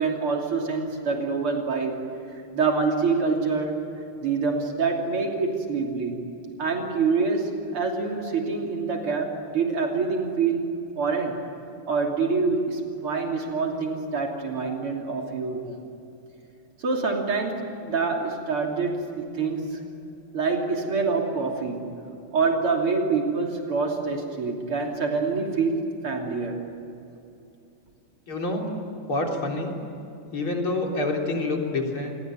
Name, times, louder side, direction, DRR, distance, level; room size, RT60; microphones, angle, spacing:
voice 1, 0.0-2.0 2.5-3.8 4.2-6.2 6.6-10.7 11.0-11.4 11.9-15.8 16.8-19.7 20.3-21.8 22.3-26.6, right 4 dB, 75° right, 1 dB, 3.9 m, -26 dB
voice 2, 28.3-28.7 29.1-29.7 30.3-32.1, left 2 dB, 70° left, 1 dB, 4.5 m, -27 dB
29.0 x 21.5 x 9.3 m, 2.7 s
omnidirectional pair, 2.4 m